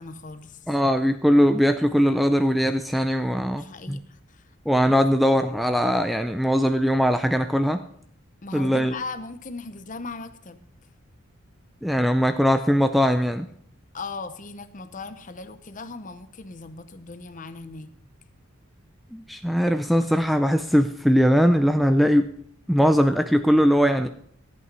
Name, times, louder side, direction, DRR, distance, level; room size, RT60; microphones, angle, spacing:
voice 1, 0.0-0.7 3.4-5.0 8.4-10.6 13.9-17.9, left 3 dB, 35° left, 11 dB, 0.7 m, -38 dB
voice 2, 0.7-4.0 4.7-7.8 8.5-8.9 11.8-13.5 19.1-22.3 22.7-24.1, equal, ahead, 8 dB, 0.4 m, -20 dB
14.0 x 8.5 x 5.4 m, 0.66 s
head